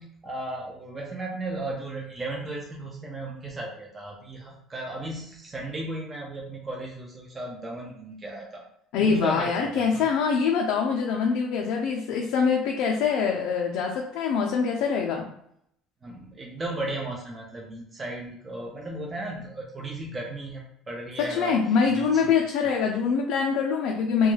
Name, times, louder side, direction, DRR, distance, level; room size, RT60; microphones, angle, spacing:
voice 1, 0.0-8.6 9.0-10.1 16.0-21.6 21.9-22.3, right 2 dB, 20° right, -1 dB, 0.5 m, -35 dB
voice 2, 8.9-15.3 21.2-24.3, left 5 dB, 75° left, 0 dB, 0.4 m, -24 dB
2.3 x 2.1 x 3.1 m, 0.71 s
cardioid pair, 135°, 0 cm